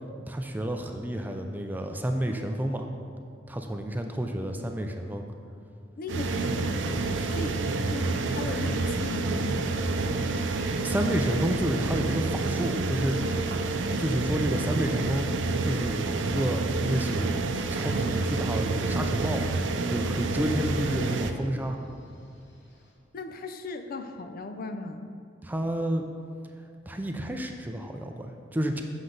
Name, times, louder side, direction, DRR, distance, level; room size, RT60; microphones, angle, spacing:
voice 1, 0.3-2.9 3.5-5.2 10.8-13.2 14.0-15.3 15.6-17.3 17.7-19.5 19.9-21.8 25.4-26.1 26.9-28.8, right 1 dB, 10° right, 4 dB, 0.4 m, -30 dB
voice 2, 6.0-7.6 7.9-9.7 23.1-25.1, left 2 dB, 50° left, 7 dB, 0.5 m, -37 dB
sound 1, 6.1-21.3, right 3 dB, 80° right, 0.5 m, -28 dB
Telephone, 12.8-22.9, right 3 dB, 70° left, 1.2 m, -47 dB
7.8 x 6.3 x 3.9 m, 2.4 s
head